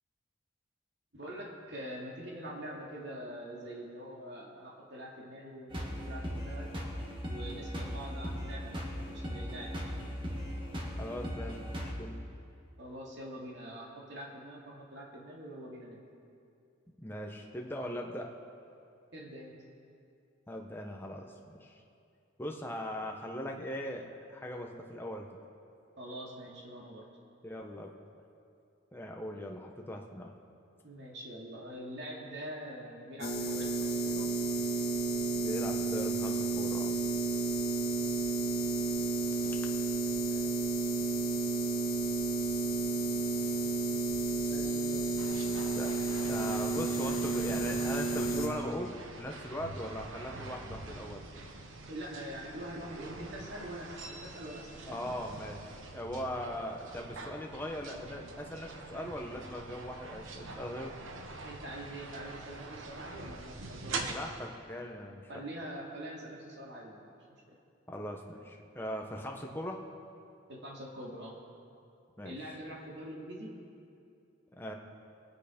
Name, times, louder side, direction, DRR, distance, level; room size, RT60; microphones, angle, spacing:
voice 1, 1.1-6.7 7.3-10.1 12.8-16.0 19.1-19.6 26.0-27.1 29.3-29.4 30.8-34.3 37.8-38.2 40.3-40.5 44.4-45.1 51.9-55.0 61.4-64.1 65.3-67.1 67.5-67.6 70.5-71.4 72.2-73.6, right 1 dB, 60° right, -2 dB, 2.5 m, -44 dB
sound 1, 5.7-11.9, equal, 25° right, 1.6 m, -38 dB
voice 2, 11.0-12.2 17.0-18.3 20.5-21.8 22.4-25.3 27.4-27.9 28.9-30.3 35.3-37.0 39.4-39.6 45.8-45.9 46.3-51.2 54.8-60.9 64.0-65.2 67.9-69.8 72.2-72.4 74.6-74.7, equal, 10° left, 1 dB, 1.0 m, -40 dB
sound 2, 33.2-48.5, right 3 dB, 50° left, 2.0 m, -31 dB
sound 3, 45.2-64.1, right 3 dB, 80° right, 1.1 m, -45 dB
21.5 x 9.4 x 5.2 m, 2.5 s
head